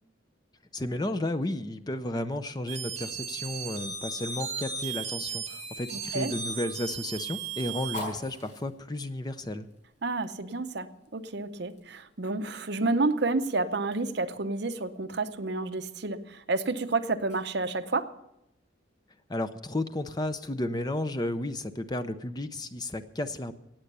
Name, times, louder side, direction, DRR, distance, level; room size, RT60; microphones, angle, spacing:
voice 1, 0.7-9.7 19.3-23.5, left 1 dB, 20° left, 11 dB, 0.6 m, -33 dB
sound 1, 2.7-8.4, right 6 dB, 35° right, 1.7 m, -36 dB
Fire, 4.8-18.1, left 1 dB, 40° left, 5.8 m, -50 dB
voice 2, 10.0-18.1, right 3 dB, 60° right, 10 dB, 0.8 m, -30 dB
16.5 x 8.9 x 6.8 m, 0.83 s
head